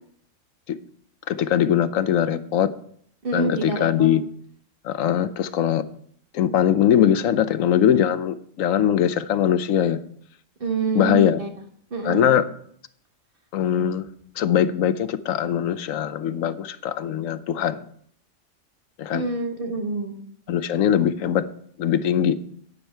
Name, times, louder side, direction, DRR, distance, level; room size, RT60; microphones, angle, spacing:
voice 1, 1.3-2.7 3.3-4.2 4.8-5.8 6.3-10.0 10.9-11.4 12.0-12.4 13.5-14.0 14.4-17.8 19.0-19.2 20.5-21.5 21.8-22.4, left 10 dB, 85° left, 13 dB, 1.1 m, -21 dB
voice 2, 3.2-4.1 10.6-11.5 11.9-12.3 19.1-20.2, right 3 dB, 45° right, 3 dB, 1.9 m, -27 dB
12.0 x 9.4 x 4.5 m, 0.63 s
omnidirectional pair, 1.3 m